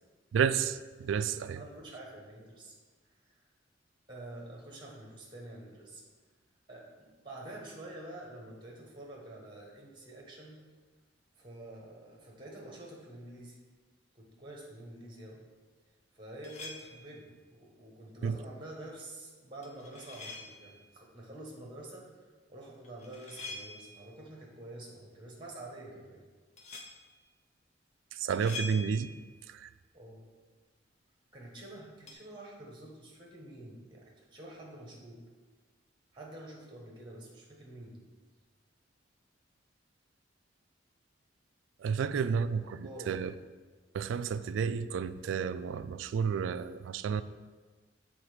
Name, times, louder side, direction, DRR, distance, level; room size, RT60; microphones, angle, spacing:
voice 1, 0.3-1.6 18.2-18.3 28.2-29.1 29.5-29.7 41.8-43.3 43.9-47.2, right 6 dB, 90° right, 14 dB, 0.3 m, -31 dB
voice 2, 1.3-2.7 3.2-3.4 4.1-6.0 6.7-10.6 11.4-13.6 14.1-15.4 16.1-26.2 29.9-30.3 31.3-35.2 36.1-38.0 42.0-42.4 42.6-43.3, right 1 dB, 25° right, -1 dB, 1.3 m, -48 dB
sound 1, 16.4-17.2 19.6-20.8 22.8-24.1 26.6-27.1 28.3-29.3 32.1-32.2, left 3 dB, 35° left, 0.7 m, -45 dB
7.3 x 3.5 x 5.0 m, 1.4 s
head